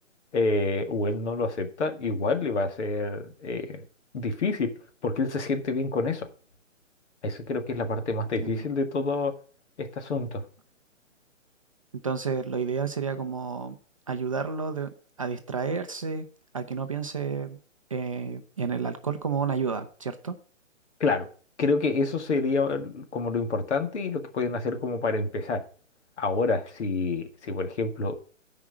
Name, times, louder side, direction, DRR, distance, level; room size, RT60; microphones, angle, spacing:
voice 1, 0.3-3.8 4.1-4.7 5.0-6.3 7.2-9.3 9.8-10.4 21.0-21.3 21.6-25.6 26.2-28.2, left 3 dB, 60° left, 7 dB, 1.9 m, -28 dB
voice 2, 12.0-13.8 14.1-14.9 15.2-16.2 16.5-17.6 17.9-20.4, right 5 dB, 30° right, 7 dB, 0.5 m, -30 dB
9.4 x 5.0 x 7.3 m, 0.40 s
hypercardioid pair, 155°, 38 cm